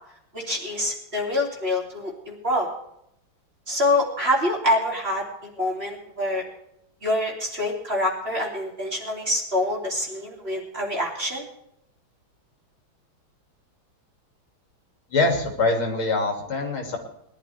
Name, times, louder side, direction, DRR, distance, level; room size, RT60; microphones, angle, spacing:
voice 1, 0.3-2.7 3.7-6.4 7.0-11.4, left 1 dB, 30° right, -1 dB, 3.0 m, -26 dB
voice 2, 15.1-17.0, left 3 dB, 85° left, 2 dB, 3.5 m, -23 dB
21.0 x 12.0 x 3.5 m, 0.76 s
omnidirectional pair, 2.3 m